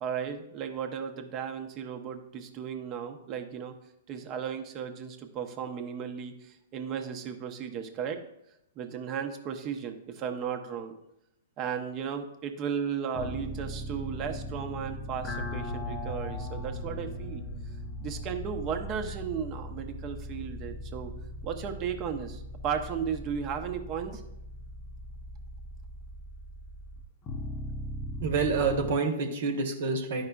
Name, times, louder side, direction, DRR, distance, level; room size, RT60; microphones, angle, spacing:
voice 1, 0.0-3.7 4.1-8.2 8.8-10.9 11.6-17.4 18.0-21.1 21.4-24.2, right 7 dB, 35° right, 5 dB, 0.8 m, -35 dB
sound 1, 13.1-28.9, equal, 30° left, 0.6 m, -39 dB
voice 2, 28.2-30.2, right 4 dB, 65° right, 4 dB, 1.1 m, -27 dB
10.5 x 4.8 x 2.3 m, 0.83 s
hypercardioid pair, 120°, 0 cm